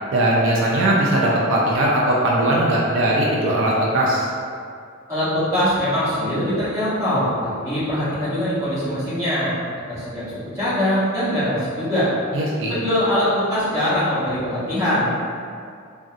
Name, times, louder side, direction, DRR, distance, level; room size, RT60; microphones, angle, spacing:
voice 1, 0.1-4.3 12.3-12.8, right 1 dB, 65° right, -4 dB, 0.4 m, -19 dB
voice 2, 5.1-9.5 9.9-12.1 12.7-15.2, equal, 15° right, -13 dB, 1.2 m, -22 dB
3.8 x 2.2 x 2.4 m, 2.3 s
head